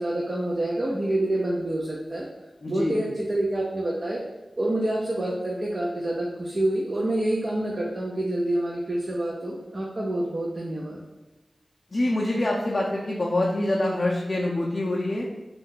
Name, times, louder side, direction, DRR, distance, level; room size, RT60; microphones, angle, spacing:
voice 1, 0.0-2.3 2.7-4.2 4.6-11.0, right 1 dB, 45° right, -3 dB, 0.4 m, -27 dB
voice 2, 2.6-3.0 11.9-15.3, left 1 dB, 45° left, -4 dB, 0.4 m, -25 dB
2.6 x 2.3 x 3.6 m, 1.1 s
wide cardioid pair, 70°, 0 cm